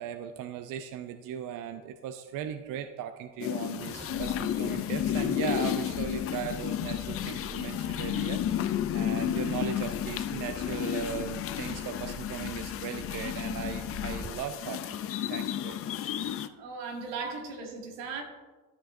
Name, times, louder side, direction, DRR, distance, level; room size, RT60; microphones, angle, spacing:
voice 1, 0.0-16.1 17.2-17.3, right 9 dB, 50° right, 9 dB, 0.5 m, -38 dB
sound 1, 3.4-16.5, left 10 dB, 35° left, 0.4 m, -32 dB
sound 2, 3.9-14.5 14.9-15.0, left 2 dB, 15° right, 0.7 m, -45 dB
voice 2, 16.4-18.2, right 4 dB, 75° right, 2 dB, 1.7 m, -38 dB
12.5 x 6.3 x 2.5 m, 1.3 s
supercardioid pair, 100°, 43 cm